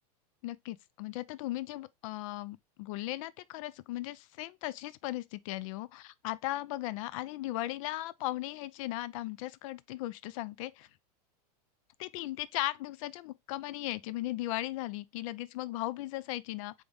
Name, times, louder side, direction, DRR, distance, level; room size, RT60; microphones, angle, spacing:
voice 1, 0.4-10.9 12.0-16.7, left 16 dB, 55° left, 0.4 m, -37 dB
3.9 x 3.5 x 3.3 m
supercardioid pair, 140°, 20 cm